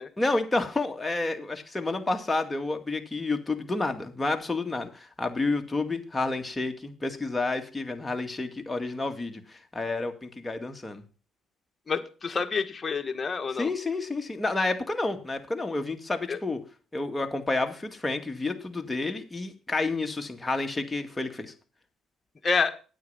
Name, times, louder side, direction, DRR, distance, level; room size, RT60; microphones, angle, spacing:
voice 1, 0.2-11.0 13.5-16.6 16.9-21.5, left 3 dB, 20° left, 4 dB, 2.1 m, -30 dB
voice 2, 11.9-13.7 16.3-16.4 22.4-22.7, left 5 dB, 35° left, 6 dB, 1.6 m, -28 dB
9.3 x 8.6 x 5.6 m, 0.36 s
supercardioid pair, 65°, 0 cm